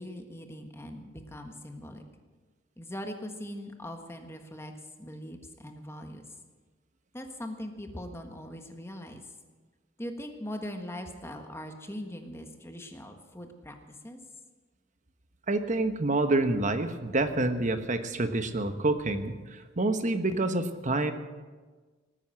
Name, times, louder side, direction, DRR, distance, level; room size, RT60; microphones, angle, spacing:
voice 1, 0.0-2.0 2.8-4.7 5.0-6.2 7.1-9.2 10.0-13.7 14.0-14.2, equal, 15° left, 5 dB, 1.4 m, -41 dB
voice 2, 15.5-21.1, right 2 dB, 40° right, 8 dB, 1.1 m, -27 dB
19.0 x 9.6 x 7.7 m, 1.4 s
head